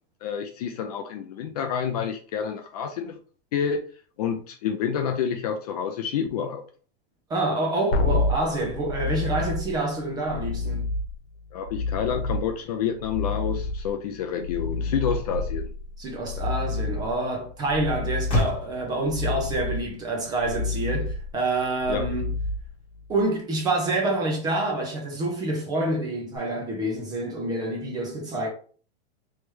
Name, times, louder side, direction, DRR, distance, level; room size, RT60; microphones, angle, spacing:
voice 1, 0.2-3.2 3.5-3.8 4.2-6.6 11.5-15.7 21.9-22.1, left 7 dB, 40° left, 0.4 m, -28 dB
voice 2, 7.3-10.9 16.0-22.3 23.1-28.5, right 2 dB, 10° right, 0.6 m, -27 dB
sound 1, 7.9-23.2 26.4-26.5, left 3 dB, 65° left, 1.1 m, -30 dB
Motor vehicle (road), 15.6-22.8, left 1 dB, 15° left, 1.0 m, -36 dB
3.2 x 3.2 x 3.1 m
supercardioid pair, 170°, 32 cm